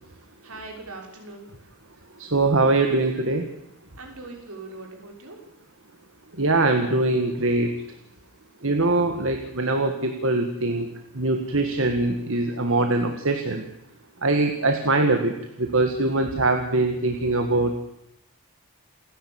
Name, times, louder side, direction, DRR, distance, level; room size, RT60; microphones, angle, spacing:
voice 1, 0.1-1.7 4.0-5.4, right 2 dB, 75° right, 1 dB, 6.1 m, -41 dB
voice 2, 2.2-3.5 6.3-7.7 8.6-10.9 11.1-13.7 14.2-17.8, right 2 dB, 60° right, 5 dB, 2.0 m, -22 dB
28.5 x 11.0 x 9.1 m, 0.85 s
head